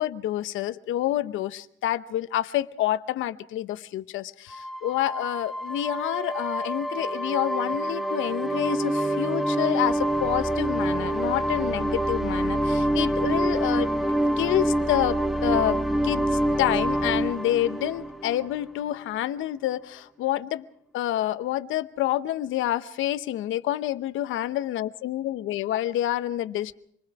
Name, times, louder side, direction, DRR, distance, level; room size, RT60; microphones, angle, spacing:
voice 1, 0.0-13.9 14.4-20.6 20.9-26.7, left 13 dB, 90° left, 13 dB, 0.9 m, -28 dB
sound 1, 4.5-18.9, right 1 dB, ahead, 1.4 m, -26 dB
27.0 x 20.5 x 4.8 m, 0.66 s
cardioid pair, 90°, 20 cm